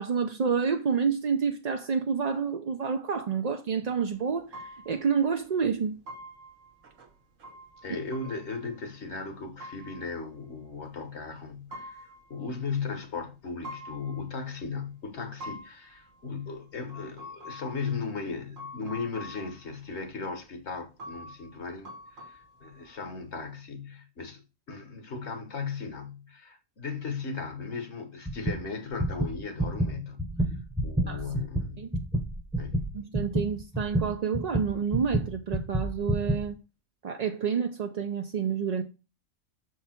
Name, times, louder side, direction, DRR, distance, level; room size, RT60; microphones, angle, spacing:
voice 1, 0.0-6.0 31.1-31.2 31.8-31.9 32.9-36.6 37.0-38.8, right 6 dB, 50° right, 0.4 m, -29 dB
sound 1, 4.2-4.3 4.5-5.2 5.6-5.7 6.0-9.3 9.6-11.0 11.5-13.0 13.6-14.7 15.2-19.8 20.0-20.1 20.6-20.7 21.0-23.4, left 1 dB, 80° right, 1.4 m, -46 dB
voice 2, 7.8-31.8 32.6-32.9, left 4 dB, 60° left, 1.4 m, -37 dB
sound 2, 28.3-28.6 28.9-36.5, right 1 dB, 5° right, 0.8 m, -29 dB
6.7 x 4.7 x 4.3 m
omnidirectional pair, 1.3 m